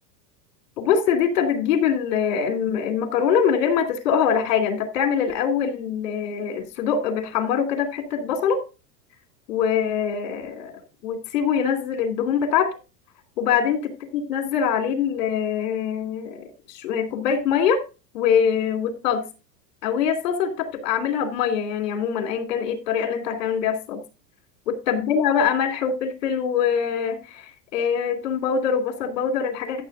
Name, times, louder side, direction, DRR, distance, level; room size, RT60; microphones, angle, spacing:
voice 1, 0.8-8.6 9.5-10.7 11.0-12.7 13.4-13.8 14.1-16.4 16.7-17.8 18.1-19.2 19.8-24.0 24.9-29.8, left 7 dB, 80° left, 3.1 m, -23 dB
14.0 x 7.1 x 2.7 m
hypercardioid pair, 105°, 49 cm